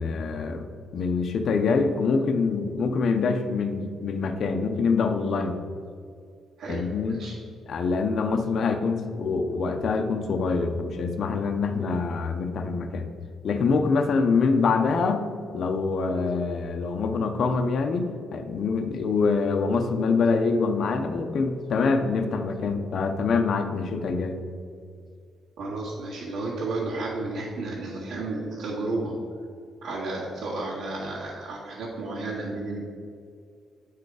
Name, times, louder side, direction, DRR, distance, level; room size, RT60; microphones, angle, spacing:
voice 1, 0.0-5.6 6.7-7.2 7.7-13.1 13.4-24.4, left 4 dB, 55° left, 5 dB, 0.6 m, -25 dB
voice 2, 6.6-7.3 25.6-29.1 29.8-32.8, right 2 dB, 90° right, -8 dB, 1.7 m, -32 dB
8.9 x 4.8 x 4.8 m, 2.3 s
cardioid pair, 140°, 0 cm